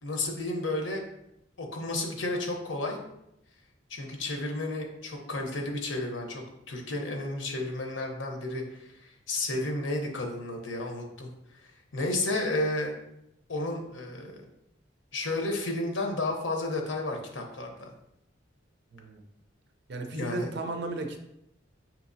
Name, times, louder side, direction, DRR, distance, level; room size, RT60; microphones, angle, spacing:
voice 1, 0.0-1.1 1.6-3.0 3.9-6.4 6.7-11.3 11.5-11.6 11.9-12.9 13.5-14.4 15.1-17.9 20.1-20.5, left 2 dB, 80° left, 2 dB, 0.8 m, -32 dB
voice 2, 18.9-19.2 19.9-21.2, right 2 dB, 60° right, 5 dB, 0.6 m, -34 dB
5.9 x 2.9 x 2.6 m, 0.82 s
head